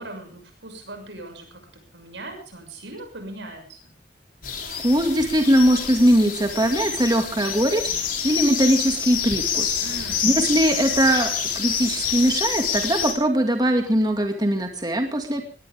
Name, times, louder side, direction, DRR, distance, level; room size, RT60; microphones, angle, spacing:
voice 1, 0.0-1.6 1.9-3.9 9.8-10.3, right 1 dB, 85° right, 5 dB, 6.5 m, -39 dB
sound 1, 4.4-13.1, left 7 dB, 50° left, 3.5 m, -27 dB
voice 2, 4.8-9.7 10.2-15.4, right 1 dB, 25° right, 4 dB, 2.1 m, -21 dB
21.0 x 17.0 x 3.6 m, 0.35 s
head